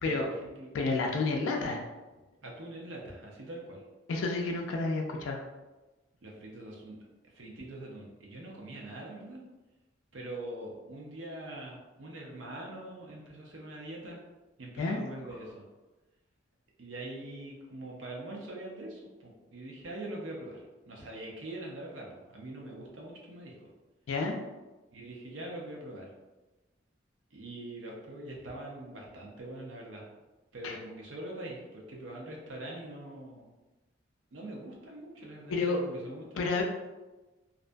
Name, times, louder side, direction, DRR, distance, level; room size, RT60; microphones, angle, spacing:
voice 1, 0.0-0.7 2.4-3.8 6.2-7.0 7.2-9.4 10.1-14.2 14.6-15.6 16.8-23.7 24.9-26.1 27.3-30.1 30.5-33.5 34.3-36.6, right 1 dB, 75° right, -2 dB, 0.6 m, -43 dB
voice 2, 0.7-1.8 4.1-5.4 14.8-15.0 24.1-24.4 30.6-30.8 35.5-35.8 36.4-36.6, left 3 dB, 90° left, 1 dB, 0.4 m, -30 dB
2.5 x 2.2 x 2.5 m, 1.1 s
head